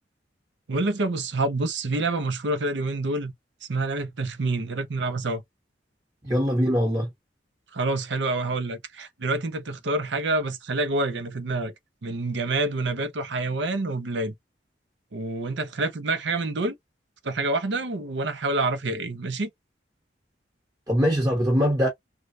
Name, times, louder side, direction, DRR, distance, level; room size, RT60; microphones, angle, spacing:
voice 1, 0.7-3.3 3.7-5.4 7.7-11.7 12.0-14.3 15.1-16.7 17.2-19.5, right 2 dB, 70° right, 0.7 m, -27 dB
voice 2, 6.2-7.1 20.9-21.9, equal, 20° right, 1.0 m, -22 dB
3.2 x 2.3 x 2.6 m
head